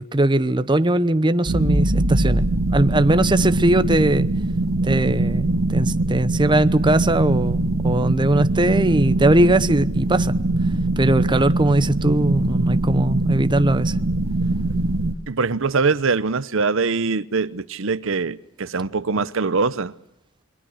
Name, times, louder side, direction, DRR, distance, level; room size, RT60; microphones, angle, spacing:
voice 1, 0.0-2.4 2.7-4.3 4.8-10.3 11.0-14.0, right 1 dB, 20° right, 0.9 m, -20 dB
sound 1, 1.5-15.1, right 2 dB, 85° right, 1.8 m, -22 dB
voice 2, 15.3-19.9, right 4 dB, 70° right, 0.8 m, -23 dB
28.0 x 23.0 x 6.3 m
head